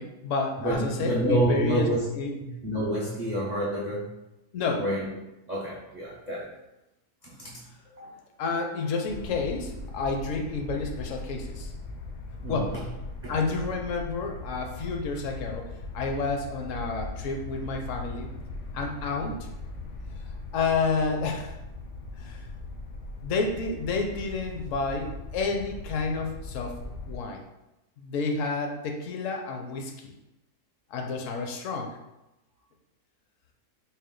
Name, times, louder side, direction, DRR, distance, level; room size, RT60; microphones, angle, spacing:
voice 1, 0.0-1.9 2.1-2.3 4.5-4.9 8.0-8.1 8.4-11.7 12.5-12.7 13.3-15.7 15.9-18.3 18.7-19.4 20.5-21.5 22.2-22.4 23.2-26.8 27.0-27.4 28.0-30.1 30.9-32.0, left 4 dB, 65° left, 3 dB, 0.8 m, -30 dB
voice 2, 0.6-2.0 2.4-4.0 4.8-5.1 5.5-6.5 7.2-8.1 12.4-12.8 13.2-13.4, right 1 dB, 70° right, -7 dB, 0.4 m, -28 dB
sound 1, 9.1-27.2, left 2 dB, 85° left, 1.2 m, -39 dB
4.2 x 2.2 x 3.7 m, 0.95 s
omnidirectional pair, 1.7 m